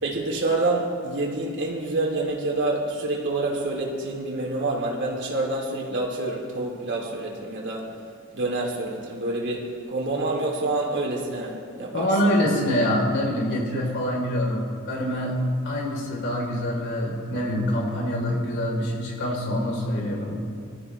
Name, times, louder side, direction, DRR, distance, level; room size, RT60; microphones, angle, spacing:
voice 1, 0.0-7.9 8.3-12.1, right 2 dB, 60° right, -2 dB, 3.2 m, -27 dB
voice 2, 11.9-20.4, equal, 60° left, -2 dB, 4.0 m, -25 dB
25.0 x 13.5 x 3.4 m, 2.2 s
head